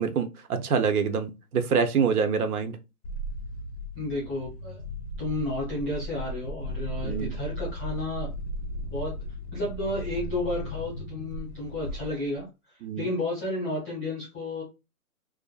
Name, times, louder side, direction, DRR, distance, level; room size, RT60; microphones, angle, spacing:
voice 1, 0.0-2.8 7.0-7.3 12.8-13.1, right 6 dB, 80° right, 0.7 m, -26 dB
sound 1, 3.0-12.4, equal, 50° left, 0.5 m, -36 dB
voice 2, 4.0-4.8 5.2-8.3 8.9-9.1 9.5-12.4 13.0-14.6, left 2 dB, 5° left, 0.7 m, -32 dB
2.5 x 2.4 x 2.3 m
hypercardioid pair, 170°, 44 cm